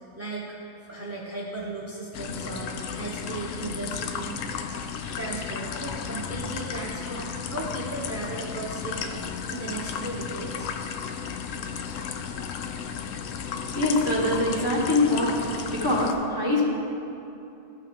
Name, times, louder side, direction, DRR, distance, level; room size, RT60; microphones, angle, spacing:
voice 1, 0.1-0.6 0.9-4.7 5.1-10.7, right 2 dB, 15° right, -5 dB, 0.6 m, -36 dB
sound 1, 2.1-16.1, left 6 dB, 70° left, 0.9 m, -34 dB
voice 2, 13.7-15.4 15.7-16.7, left 2 dB, 15° left, -5 dB, 1.3 m, -23 dB
14.0 x 5.5 x 3.5 m, 2.8 s
omnidirectional pair, 1.4 m